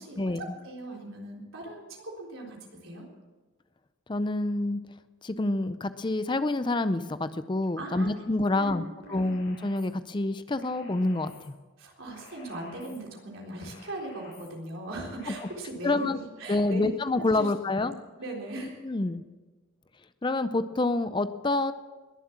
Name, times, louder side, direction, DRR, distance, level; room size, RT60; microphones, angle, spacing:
voice 1, 0.0-2.6 2.8-3.1 7.8-8.1 8.5-9.2 11.8-17.5 17.7-18.8, right 1 dB, 80° right, -1 dB, 3.8 m, -39 dB
voice 2, 4.1-4.8 5.2-11.5 15.3-15.4 15.8-16.2 16.5-17.9 18.8-19.2 20.2-21.7, left 2 dB, 20° left, 12 dB, 0.5 m, -27 dB
sound 1, 9.0-9.9 10.5-11.5 12.1-13.0 13.6-14.5 15.1-15.5, left 2 dB, 85° left, 5.8 m, -52 dB
21.0 x 7.6 x 7.3 m, 1.3 s
head